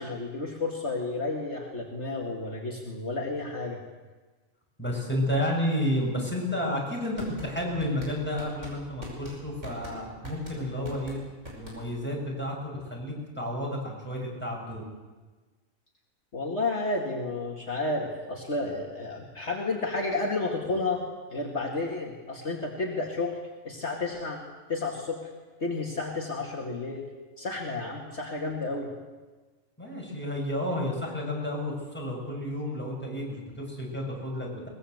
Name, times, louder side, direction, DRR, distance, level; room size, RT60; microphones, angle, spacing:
voice 1, 0.0-3.8 16.3-21.0 21.3-23.4 23.6-24.4 24.7-25.3 25.6-27.1 27.4-28.9, left 3 dB, 55° left, 0 dB, 2.6 m, -31 dB
voice 2, 4.8-11.2 11.5-14.8 29.8-34.7, left 1 dB, 10° left, -2 dB, 6.9 m, -31 dB
sound 1, 7.1-12.1, equal, 60° right, 6.1 m, -43 dB
22.5 x 20.5 x 8.0 m, 1.3 s
omnidirectional pair, 1.4 m